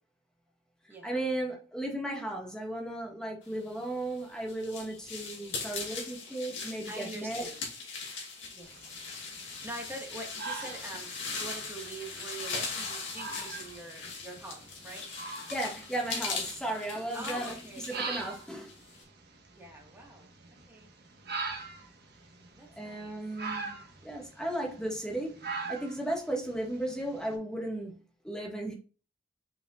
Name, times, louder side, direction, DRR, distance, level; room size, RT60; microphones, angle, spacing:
voice 1, 1.0-7.5 15.5-17.5 17.9-18.7 22.8-28.7, right 1 dB, 5° left, 1.8 m, -35 dB
sound 1, 3.9-19.0, left 4 dB, 65° left, 2.5 m, -40 dB
voice 2, 6.7-7.6 8.5-8.8 9.6-15.1 17.1-18.3 19.5-20.3 20.7-20.9 22.6-23.2, right 2 dB, 10° right, 1.7 m, -44 dB
sound 2, 8.6-27.3, right 4 dB, 55° right, 1.4 m, -43 dB
6.5 x 5.8 x 2.5 m
head